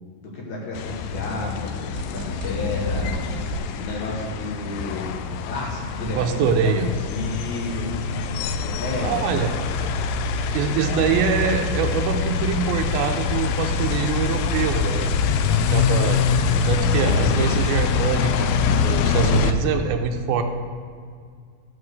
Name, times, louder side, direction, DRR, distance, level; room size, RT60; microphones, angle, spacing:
voice 1, 0.2-7.9 8.4-9.5 10.9-11.3 16.7-17.5, left 2 dB, 65° left, -2 dB, 2.3 m, -32 dB
sound 1, 0.7-19.5, left 6 dB, 80° left, 2.1 m, -24 dB
sound 2, 1.9-3.6, right 3 dB, 60° right, 2.7 m, -31 dB
voice 2, 6.2-6.9 9.0-9.5 10.5-15.1 15.7-16.2 16.6-18.5 18.8-20.4, right 6 dB, 85° right, 5 dB, 2.6 m, -24 dB
13.0 x 4.8 x 6.3 m, 2.1 s
omnidirectional pair, 4.3 m